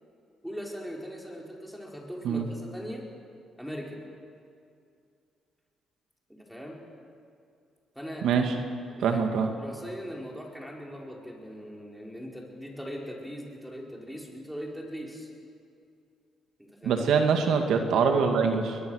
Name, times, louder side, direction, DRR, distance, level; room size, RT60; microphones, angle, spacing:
voice 1, 0.4-3.1 3.6-4.0 6.3-6.8 7.9-8.3 8.9-9.2 9.6-15.3 16.6-17.1, equal, ahead, -1 dB, 4.7 m, -40 dB
voice 2, 8.2-8.5 9.0-9.5 16.8-18.8, right 6 dB, 80° right, 4 dB, 2.2 m, -24 dB
22.0 x 20.5 x 6.6 m, 2.4 s
cardioid pair, 90°, 0 cm